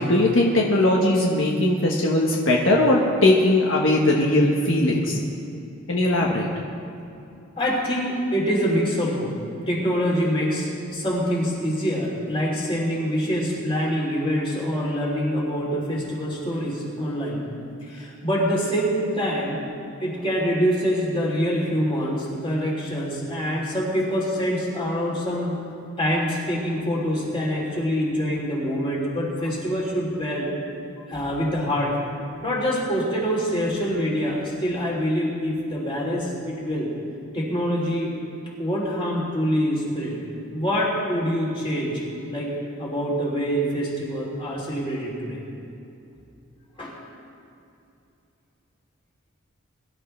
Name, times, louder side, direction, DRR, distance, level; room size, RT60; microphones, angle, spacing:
voice 1, 0.0-5.2 5.9-6.5, left 1 dB, 70° left, -2 dB, 1.3 m, -19 dB
voice 2, 7.6-9.4 9.7-17.4 17.8-19.6 20.0-25.6 26.0-30.5 31.1-31.9 32.4-36.9 37.3-38.2 38.6-40.2 40.5-42.0 42.3-45.4 46.8-46.9, equal, 25° left, -5 dB, 3.4 m, -25 dB
22.5 x 12.0 x 3.4 m, 2.7 s
head